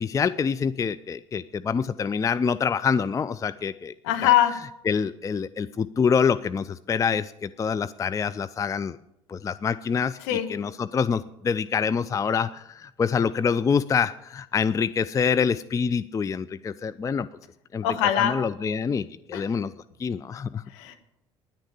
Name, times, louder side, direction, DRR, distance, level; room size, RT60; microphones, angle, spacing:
voice 1, 0.0-3.9 4.2-4.3 4.9-9.0 9.3-17.3 17.7-17.9 18.2-19.7 20.0-20.6, left 6 dB, 20° left, 14 dB, 0.4 m, -26 dB
voice 2, 4.0-4.5 10.2-10.5 17.8-18.4 19.3-19.4 20.7-20.9, left 11 dB, 65° left, 6 dB, 1.7 m, -22 dB
10.0 x 9.7 x 9.7 m, 0.85 s
figure-of-eight pair, 60°, 16 cm